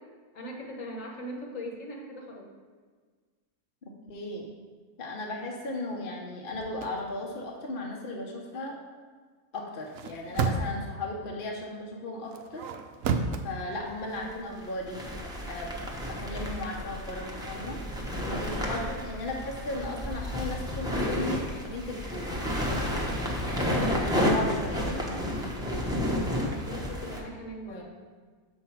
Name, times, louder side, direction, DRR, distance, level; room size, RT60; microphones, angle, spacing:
voice 1, 0.3-2.5 18.7-18.9 26.4-27.8, equal, 60° left, 0 dB, 1.5 m, -40 dB
voice 2, 4.1-4.5 5.0-8.8 9.5-12.6 13.4-15.0 15.5-17.8 18.3-22.3 22.8-23.3 23.7-25.2 27.7-27.8, left 2 dB, 45° left, -1 dB, 0.9 m, -36 dB
sound 1, 6.5-6.9 9.8-10.9 12.3-13.4, right 5 dB, 70° right, 0.9 m, -30 dB
sound 2, 13.2-13.3 14.1-27.2, equal, 5° right, 0.7 m, -31 dB
7.3 x 4.5 x 5.8 m, 1.5 s
omnidirectional pair, 1.6 m